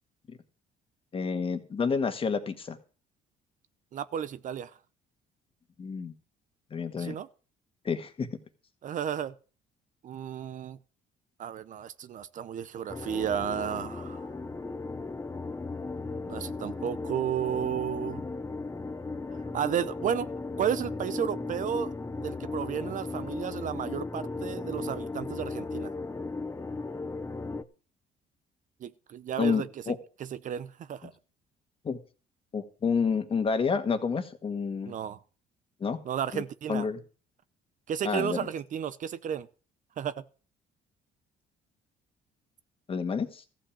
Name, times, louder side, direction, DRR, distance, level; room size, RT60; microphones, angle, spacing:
voice 1, 1.1-2.8 5.8-6.1 6.7-7.2 7.8-8.3 29.4-30.0 31.8-32.0 32.5-34.9 35.8-36.0 36.3-36.4 36.7-37.0 38.0-38.5 42.9-43.4, left 5 dB, 35° left, 1.7 m, -29 dB
voice 2, 3.9-4.7 7.0-7.3 8.8-9.3 10.0-10.8 11.4-14.3 16.2-18.2 19.3-20.3 20.6-21.9 22.2-25.9 28.8-29.7 30.2-31.1 34.9-35.2 36.0-36.9 37.9-39.5 40.0-40.2, right 9 dB, 50° right, 0.7 m, -33 dB
sound 1, 12.9-27.6, left 3 dB, 15° left, 0.8 m, -36 dB
14.0 x 5.8 x 8.6 m
cardioid pair, 110°, 17 cm